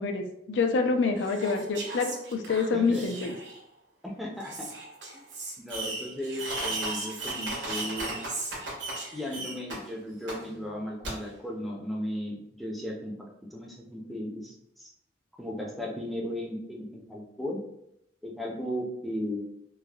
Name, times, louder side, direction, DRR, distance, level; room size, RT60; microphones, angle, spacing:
voice 1, 0.0-3.3, left 4 dB, 75° left, 6 dB, 0.4 m, -27 dB
Whispering, 1.2-3.7 4.4-5.6 6.2-9.5, right 3 dB, 65° right, 0.6 m, -41 dB
voice 2, 2.7-3.3 4.0-4.7 5.1-5.2 5.6-8.2 9.1-13.1 13.5-14.9 15.4-17.6 18.2-19.4, equal, ahead, -3 dB, 0.4 m, -36 dB
Fireworks, 5.7-6.1 6.4-9.0 9.3-9.7 10.3-10.4 11.0-11.1, right 2 dB, 85° right, 1.1 m, -34 dB
3.2 x 2.0 x 2.2 m, 0.78 s
head